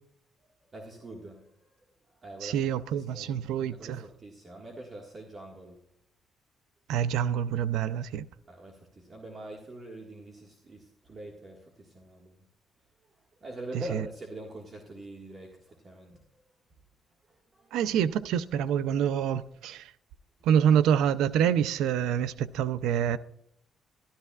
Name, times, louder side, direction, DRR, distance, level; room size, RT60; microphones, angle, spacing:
voice 1, 0.7-1.5 2.1-5.8 8.5-12.4 13.4-16.2 17.3-17.8, right 1 dB, 35° right, 1.7 m, -44 dB
voice 2, 2.4-4.0 6.9-8.3 13.9-14.0 17.7-19.9 20.4-23.2, right 9 dB, 90° right, 0.4 m, -26 dB
13.0 x 12.0 x 2.4 m
cardioid pair, 90°, 0 cm